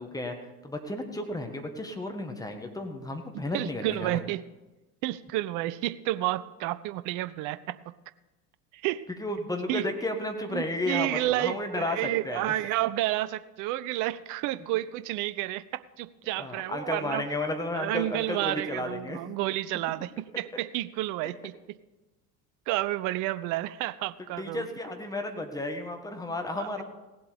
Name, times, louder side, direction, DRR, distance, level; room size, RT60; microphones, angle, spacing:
voice 1, 0.0-4.2 9.2-12.5 16.4-19.3 24.4-26.8, left 2 dB, 10° left, 5 dB, 1.5 m, -33 dB
voice 2, 3.5-4.4 5.0-7.9 8.8-9.0 9.7-9.9 10.5-17.2 17.7-21.8 22.7-24.7 26.5-26.8, right 16 dB, 40° right, 16 dB, 0.6 m, -31 dB
17.0 x 7.9 x 5.2 m, 1.1 s
figure-of-eight pair, 70°, 47 cm